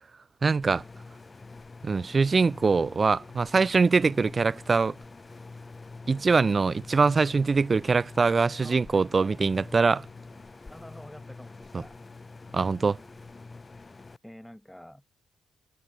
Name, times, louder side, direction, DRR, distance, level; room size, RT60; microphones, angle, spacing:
voice 1, 0.4-0.8 1.8-5.0 6.1-10.1 11.7-11.8 12.5-13.0, right 4 dB, 30° right, 0.9 m, -23 dB
sound 1, 0.6-14.2, left 3 dB, 25° left, 6.5 m, -46 dB
voice 2, 10.7-11.9 12.2-12.3 14.2-15.0, equal, 5° left, 4.7 m, -48 dB
cardioid pair, 90°, 0 cm